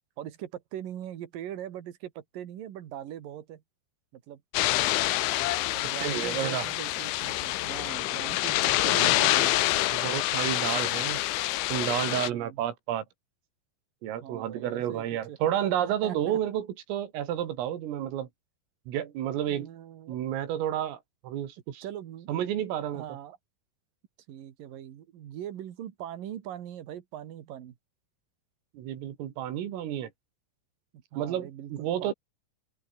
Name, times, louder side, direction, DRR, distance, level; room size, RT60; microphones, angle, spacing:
voice 1, 0.2-3.6 4.1-4.4 5.7-9.8 12.3-12.6 14.2-15.4 15.8-16.4 19.5-20.2 21.8-22.3 22.9-23.4 24.3-27.7 30.9-32.1, right 11 dB, 55° right, 2.8 m, -41 dB
sound 1, 4.5-12.3, left 17 dB, 75° left, 3.2 m, -27 dB
voice 2, 6.0-6.7 9.0-9.1 9.9-11.2 11.7-13.1 14.0-18.3 18.9-19.7 20.1-21.8 22.3-23.0 28.7-30.1 31.2-32.1, right 11 dB, 85° right, 5.1 m, -31 dB
omnidirectional pair, 5.8 m